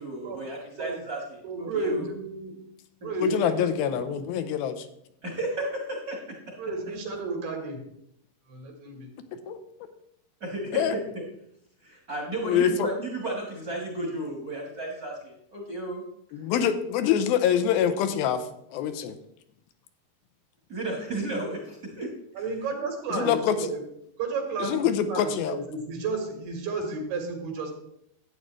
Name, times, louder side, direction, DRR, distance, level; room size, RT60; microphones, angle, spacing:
voice 1, 0.0-2.1 3.0-3.5 5.2-6.3 10.4-11.0 11.8-16.0 20.7-22.5, right 1 dB, 55° right, -2 dB, 1.0 m, -34 dB
voice 2, 1.4-2.5 3.0-4.1 6.6-7.8 8.5-9.1 22.4-23.8 24.2-27.7, right 3 dB, 90° right, 2 dB, 3.7 m, -32 dB
voice 3, 3.2-4.9 9.5-9.6 10.7-11.0 12.4-12.9 16.3-19.2 23.1-23.7 24.6-25.6, left 8 dB, 85° left, 9 dB, 2.5 m, -25 dB
11.5 x 8.6 x 3.2 m, 0.75 s
omnidirectional pair, 4.3 m